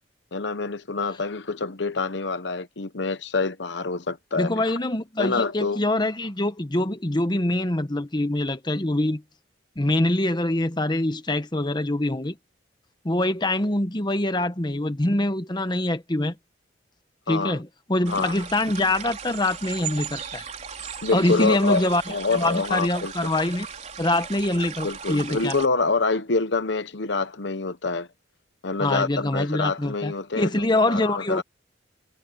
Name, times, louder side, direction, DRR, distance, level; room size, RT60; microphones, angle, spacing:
voice 1, 0.3-4.7 5.2-5.8 17.3-17.6 18.1-18.3 21.0-23.3 24.8-28.1 28.6-30.5 30.9-31.4, left 3 dB, 65° left, 1.0 m, -26 dB
voice 2, 4.4-9.2 9.8-12.4 13.0-16.3 17.3-20.4 21.1-22.0 22.3-23.7 24.0-25.6 28.8-31.4, left 1 dB, 25° left, 1.1 m, -24 dB
sound 1, 18.1-25.7, right 6 dB, 35° right, 4.0 m, -37 dB
head